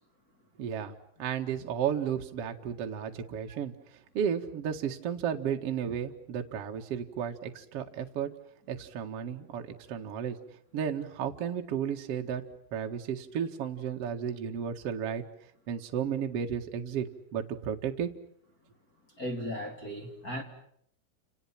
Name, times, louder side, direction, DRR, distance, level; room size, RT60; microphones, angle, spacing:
voice 1, 0.6-8.3 8.7-10.4 10.7-12.4 12.7-15.2 15.7-17.1 17.3-18.1, right 8 dB, 75° right, 3 dB, 1.3 m, -33 dB
voice 2, 19.2-20.4, equal, 25° left, 3 dB, 2.4 m, -36 dB
29.5 x 28.5 x 5.9 m, 0.70 s
omnidirectional pair, 5.9 m